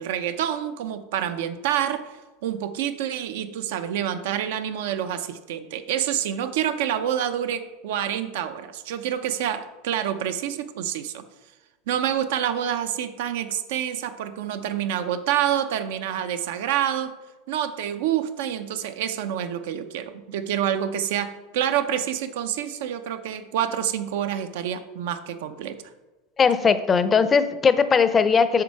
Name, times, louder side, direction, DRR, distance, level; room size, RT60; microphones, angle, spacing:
voice 1, 0.0-2.0 2.4-11.2 11.9-17.2 17.5-25.8, right 10 dB, 75° right, 9 dB, 0.7 m, -27 dB
voice 2, 26.4-28.6, left 5 dB, 20° left, 12 dB, 0.6 m, -19 dB
8.4 x 6.3 x 4.7 m, 1.2 s
supercardioid pair, 140°, 0 cm